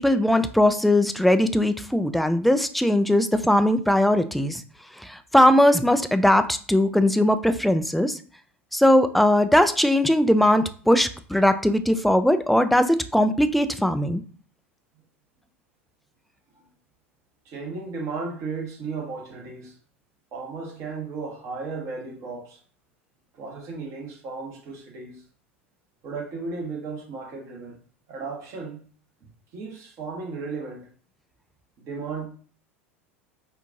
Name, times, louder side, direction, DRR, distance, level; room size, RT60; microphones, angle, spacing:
voice 1, 0.0-4.6 5.0-8.2 8.7-14.2, left 1 dB, ahead, 0.3 m, -20 dB
voice 2, 17.4-19.7 20.3-22.6 23.3-25.2 26.0-27.8 28.1-28.8 29.5-30.9 31.8-32.3, right 4 dB, 45° right, 1.3 m, -35 dB
4.4 x 2.5 x 2.7 m
hypercardioid pair, 80°, 7 cm